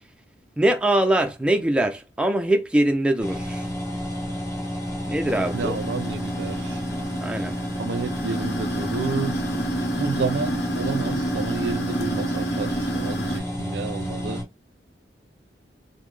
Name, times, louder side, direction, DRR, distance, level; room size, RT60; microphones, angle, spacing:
voice 1, 0.6-3.7 5.1-5.7 7.2-7.5, right 1 dB, 5° right, 0.4 m, -22 dB
sound 1, 3.2-14.4, equal, 15° left, 1.2 m, -31 dB
sound 2, 5.3-13.4, right 1 dB, 65° left, 0.8 m, -30 dB
voice 2, 5.5-6.8 7.7-9.4 10.0-14.5, right 5 dB, 75° right, 0.4 m, -30 dB
3.5 x 2.0 x 3.2 m
head